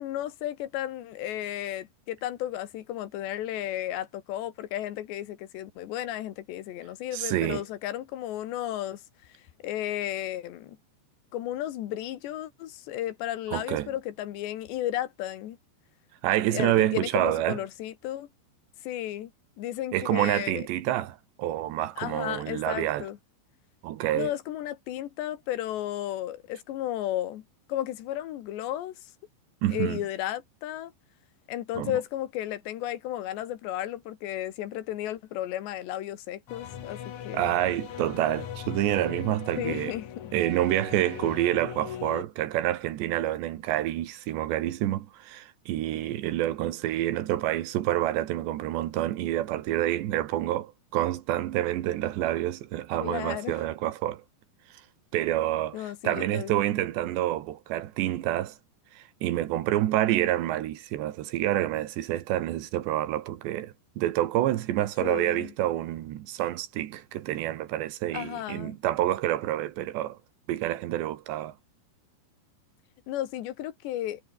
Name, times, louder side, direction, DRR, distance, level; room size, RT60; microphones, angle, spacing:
voice 1, 0.0-9.0 9.3-10.8 11.3-15.6 16.5-18.3 18.8-19.3 19.6-20.7 22.0-23.2 24.1-27.4 27.7-29.1 29.7-30.9 31.5-37.5 39.6-40.1 53.0-53.6 55.7-56.5 65.0-65.5 68.1-68.8 73.1-74.2, left 13 dB, 80° left, 3.8 m, -34 dB
voice 2, 7.1-7.6 13.5-13.9 16.2-17.6 19.9-23.1 23.8-24.3 29.6-30.0 31.8-31.9 37.3-39.9 40.3-54.2 55.1-58.6 59.0-70.2 70.5-71.5, right 13 dB, 80° right, 3.6 m, -28 dB
sound 1, 36.5-42.2, left 9 dB, 55° left, 2.7 m, -39 dB
omnidirectional pair, 5.0 m